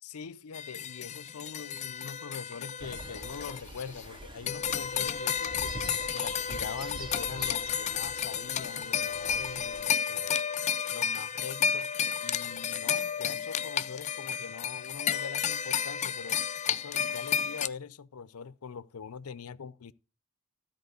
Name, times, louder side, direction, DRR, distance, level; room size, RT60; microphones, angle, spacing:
voice 1, 0.0-10.4 10.9-11.9 12.2-16.4 16.7-19.9, left 6 dB, 80° left, 0.5 m, -43 dB
sound 1, 0.5-4.2 4.5-17.7, left 7 dB, 30° left, 0.4 m, -32 dB
sound 2, 2.8-9.8, right 2 dB, 20° right, 0.6 m, -45 dB
13.0 x 4.4 x 6.6 m
head